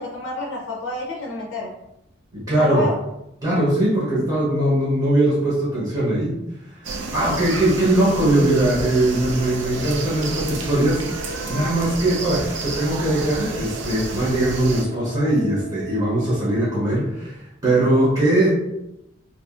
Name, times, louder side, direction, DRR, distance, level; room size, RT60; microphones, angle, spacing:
voice 1, 0.0-1.7 2.6-3.0, left 2 dB, 80° left, -3 dB, 0.5 m, -28 dB
voice 2, 2.3-2.9 3.4-6.3 6.7-18.5, right 1 dB, 20° right, -8 dB, 0.7 m, -20 dB
sound 1, 6.8-14.8, right 3 dB, 65° right, 0.4 m, -30 dB
sound 2, 8.0-16.6, right 6 dB, 15° left, 0.7 m, -43 dB
2.7 x 2.4 x 2.4 m, 0.86 s
head